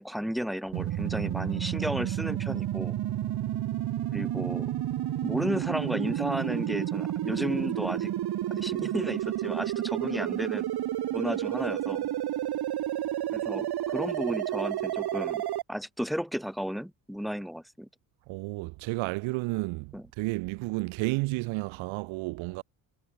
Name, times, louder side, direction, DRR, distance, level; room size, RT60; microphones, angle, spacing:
voice 1, 0.0-2.9 4.1-4.7 5.1-8.1 8.5-10.7 11.1-12.1 13.3-15.4 15.7-17.9 19.9-20.0, equal, ahead, 3.6 m, -33 dB
sound 1, 0.7-15.6, right 13 dB, 55° right, 1.5 m, -31 dB
voice 2, 18.3-22.6, right 23 dB, 80° right, 2.8 m, -32 dB
supercardioid pair, 75°, 46 cm